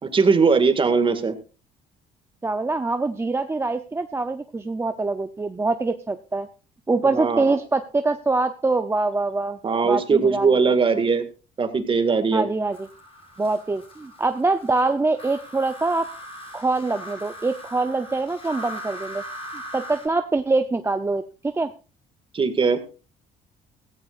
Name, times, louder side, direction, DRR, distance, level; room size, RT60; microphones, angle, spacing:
voice 1, 0.0-1.4 7.1-7.6 9.6-11.3 11.6-12.5 22.3-22.8, right 5 dB, 30° right, 8 dB, 2.0 m, -20 dB
voice 2, 2.4-6.5 6.9-9.6 9.8-10.7 12.3-12.9 13.4-16.1 16.5-19.2 19.5-21.7, right 3 dB, 15° right, 8 dB, 0.6 m, -24 dB
sound 1, 12.7-20.1, equal, 35° left, 7.8 m, -40 dB
16.5 x 15.0 x 2.5 m, 0.33 s
cardioid pair, 110°, 17 cm